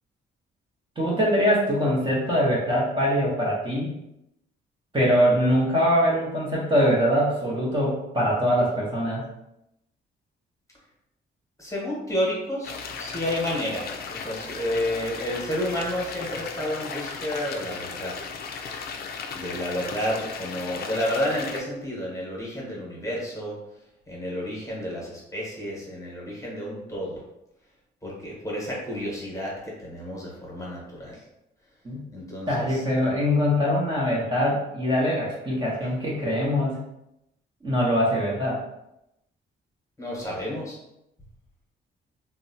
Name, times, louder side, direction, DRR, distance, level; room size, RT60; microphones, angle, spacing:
voice 1, 1.0-4.0 4.9-9.2 31.8-32.1 32.5-36.8 37.6-38.6, equal, 25° right, -6 dB, 0.8 m, -23 dB
voice 2, 11.6-18.1 19.3-23.6 24.1-27.2 28.0-31.2 32.1-32.8 35.8-35.9 40.0-40.8, equal, 15° left, -4 dB, 1.1 m, -31 dB
sound 1, 12.6-21.6, left 5 dB, 50° left, 0.4 m, -36 dB
2.8 x 2.1 x 2.7 m, 0.85 s
cardioid pair, 90°, 20 cm